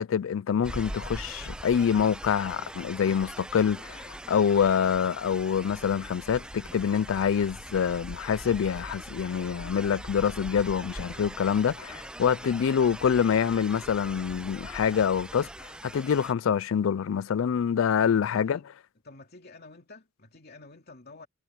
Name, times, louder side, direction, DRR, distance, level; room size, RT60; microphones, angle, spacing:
voice 1, 0.0-15.5 15.8-18.6, left 7 dB, 75° left, 0.4 m, -26 dB
sound 1, 0.6-16.3, right 1 dB, 5° right, 0.4 m, -42 dB
voice 2, 18.0-18.7 19.0-21.3, left 3 dB, 50° left, 2.9 m, -50 dB
head